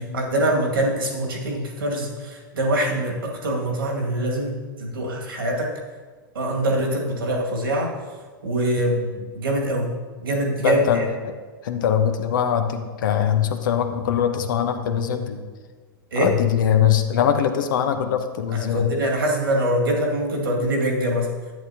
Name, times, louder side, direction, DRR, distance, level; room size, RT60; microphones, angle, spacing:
voice 1, 0.0-5.7 6.3-7.9 8.4-11.1 16.1-16.3 18.5-21.3, right 1 dB, 80° right, -1 dB, 2.1 m, -24 dB
voice 2, 10.6-11.0 11.6-15.4 16.2-18.9, left 9 dB, 65° left, 7 dB, 1.0 m, -22 dB
10.5 x 9.0 x 2.9 m, 1.4 s
hypercardioid pair, 100°, 12 cm